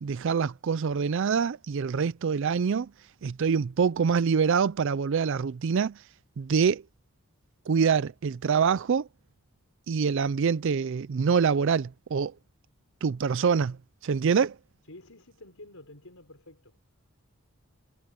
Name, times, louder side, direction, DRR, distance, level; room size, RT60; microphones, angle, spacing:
voice 1, 0.0-2.9 3.2-6.0 6.4-6.8 7.7-9.1 9.9-12.3 13.0-13.8 14.0-14.6, right 6 dB, 55° right, 0.4 m, -25 dB
voice 2, 14.9-16.8, left 2 dB, 70° left, 5.7 m, -49 dB
head